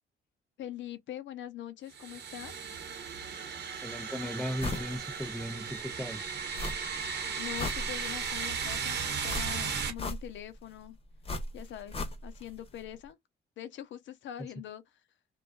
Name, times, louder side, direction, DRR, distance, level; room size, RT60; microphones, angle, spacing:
voice 1, 0.6-2.5 7.4-11.0 11.5-13.2 13.6-14.8, left 11 dB, 70° left, 0.6 m, -43 dB
sound 1, 1.9-9.9, right 6 dB, 60° right, 0.9 m, -36 dB
voice 2, 3.8-6.2, equal, ahead, 0.4 m, -37 dB
sound 2, 4.6-4.9 5.3-5.4 6.5-7.1 7.4-8.3 9.3-10.5 11.2-12.5 12.8-12.9, left 2 dB, 30° left, 0.8 m, -37 dB
2.4 x 2.3 x 2.2 m
cardioid pair, 90°, 20 cm